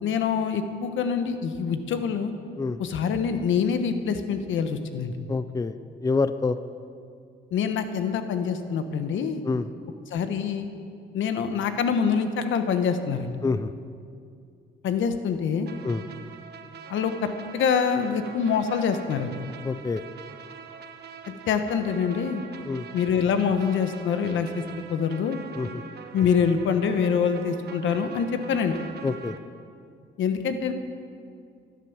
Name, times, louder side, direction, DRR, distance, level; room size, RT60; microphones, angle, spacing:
voice 1, 0.0-2.3 2.8-5.1 7.5-9.4 10.1-10.7 11.1-13.3 14.8-15.7 16.9-19.3 21.5-22.4 22.9-24.6 24.9-25.4 26.1-28.8 30.2-30.7, left 6 dB, 75° left, 8 dB, 1.2 m, -25 dB
voice 2, 5.3-6.6 9.4-9.7 13.4-13.7 15.8-16.0 19.6-20.0 22.6-22.9 25.6-25.8 29.0-29.3, left 4 dB, 15° left, 12 dB, 0.5 m, -27 dB
sound 1, 15.7-29.4, right 6 dB, 55° right, 1.2 m, -43 dB
14.0 x 11.5 x 7.2 m, 2.3 s
cardioid pair, 90°, 20 cm